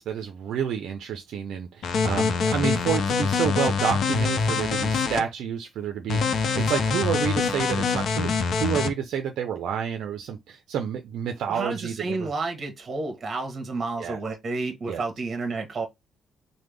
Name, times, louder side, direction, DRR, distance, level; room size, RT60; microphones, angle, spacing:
voice 1, 0.0-8.3 8.6-12.3 14.0-14.2 14.9-15.0, right 8 dB, 75° right, 0.4 m, -29 dB
sound 1, 1.8-5.2 6.1-8.9, left 5 dB, 65° left, 0.6 m, -24 dB
voice 2, 11.5-15.9, right 3 dB, 40° right, 1.1 m, -30 dB
3.3 x 2.1 x 3.3 m
cardioid pair, 80°, 0 cm